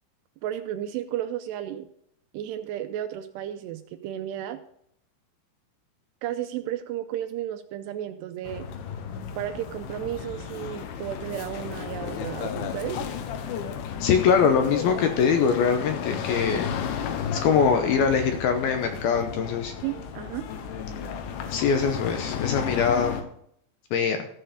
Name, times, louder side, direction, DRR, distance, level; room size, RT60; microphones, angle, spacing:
voice 1, 0.4-1.9 2.3-4.6 6.2-8.7 9.4-13.0 19.8-20.5, right 12 dB, 80° right, 9 dB, 2.5 m, -33 dB
sound 1, 8.5-23.2, left 7 dB, 90° left, 3.4 m, -33 dB
voice 2, 14.0-16.7 17.3-19.7 21.5-23.2 23.9-24.3, left 6 dB, 75° left, 6 dB, 2.4 m, -23 dB
15.0 x 6.7 x 5.1 m, 0.71 s
omnidirectional pair, 5.2 m